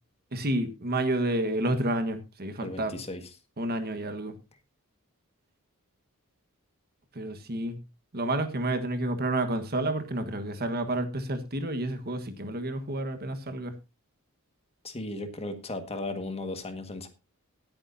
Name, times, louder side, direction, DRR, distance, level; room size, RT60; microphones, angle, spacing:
voice 1, 0.3-3.0 3.6-4.3 7.1-7.8 8.1-13.7, right 1 dB, 45° right, 9 dB, 1.5 m, -30 dB
voice 2, 2.6-3.2 14.8-17.1, left 2 dB, 30° left, 7 dB, 1.7 m, -36 dB
19.0 x 8.7 x 2.7 m, 0.26 s
head